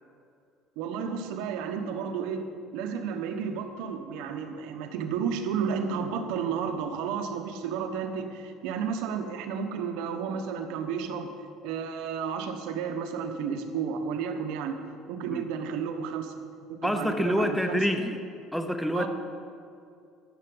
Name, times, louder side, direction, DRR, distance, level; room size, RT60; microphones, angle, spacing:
voice 1, 0.8-2.4 2.7-11.3 11.6-14.7 15.1-16.3 16.8-17.8 18.9-19.1, right 6 dB, 80° right, 6 dB, 1.2 m, -32 dB
voice 2, 16.8-18.2 18.5-19.1, equal, ahead, 6 dB, 0.8 m, -27 dB
13.0 x 7.0 x 8.0 m, 2.4 s
cardioid pair, 125°, 0 cm